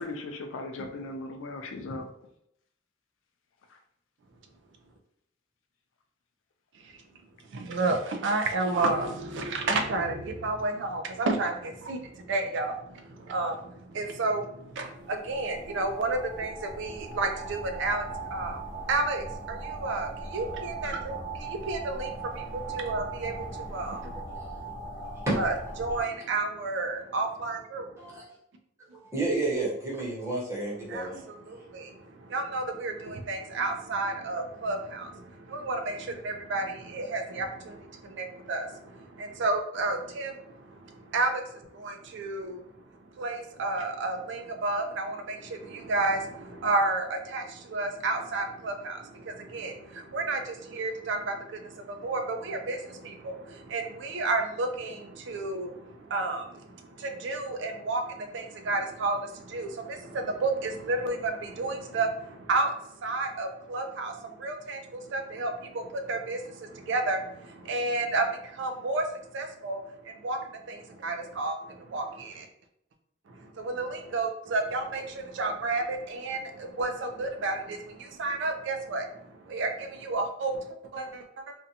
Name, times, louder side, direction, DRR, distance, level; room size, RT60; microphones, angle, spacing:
voice 1, 0.0-2.1, left 2 dB, 85° left, 5 dB, 0.4 m, -37 dB
voice 2, 7.5-24.2 24.6-24.7 25.4-28.2 30.9-42.6 43.2-69.1 69.3-72.5 73.3-81.5, right 2 dB, 65° right, 5 dB, 0.4 m, -31 dB
sound 1, 14.9-26.0, right 3 dB, 25° left, 0.5 m, -39 dB
voice 3, 24.2-24.6 24.9-25.4 28.0-28.3 28.9-31.2, right 2 dB, 15° right, -6 dB, 0.9 m, -31 dB
2.5 x 2.2 x 2.7 m, 0.74 s
head